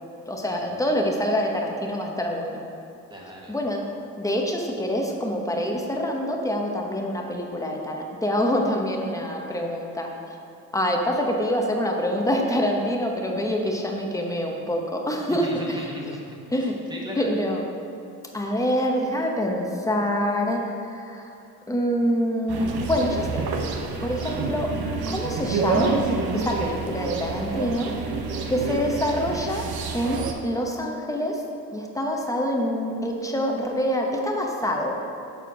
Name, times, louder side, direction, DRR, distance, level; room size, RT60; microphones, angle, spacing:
voice 1, 0.3-2.6 3.5-3.9 4.2-10.1 10.7-15.9 16.5-16.8 17.2-17.7 18.3-21.2 21.7-23.5 24.0-24.8 25.1-26.0 26.3-27.9 28.5-31.5 31.7-35.0, equal, 10° left, 1 dB, 0.9 m, -26 dB
voice 2, 3.1-3.6 15.3-17.2 28.7-28.8, equal, 10° right, -3 dB, 1.5 m, -38 dB
sound 1, 22.5-30.3, right 4 dB, 70° right, 0.9 m, -28 dB
7.2 x 4.3 x 6.0 m, 2.7 s
cardioid pair, 105°, 38 cm